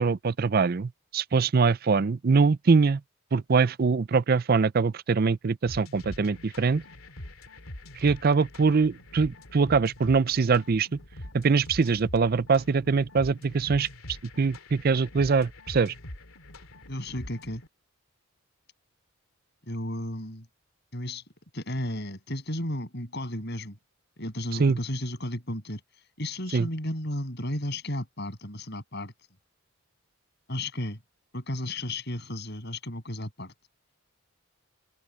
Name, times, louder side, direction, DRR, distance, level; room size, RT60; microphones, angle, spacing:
voice 1, 0.0-3.0 3.3-6.8 8.0-10.9 11.3-13.9 14.4-15.9 24.6-24.8 26.5-26.7, right 4 dB, 45° right, 0.4 m, -23 dB
sound 1, 5.7-17.7, left 1 dB, 80° left, 2.7 m, -44 dB
voice 2, 16.9-17.6 19.7-20.5 20.9-21.2 21.5-23.8 24.2-25.8 26.2-29.1 30.5-31.0 31.3-33.5, left 1 dB, 50° left, 7.4 m, -33 dB
head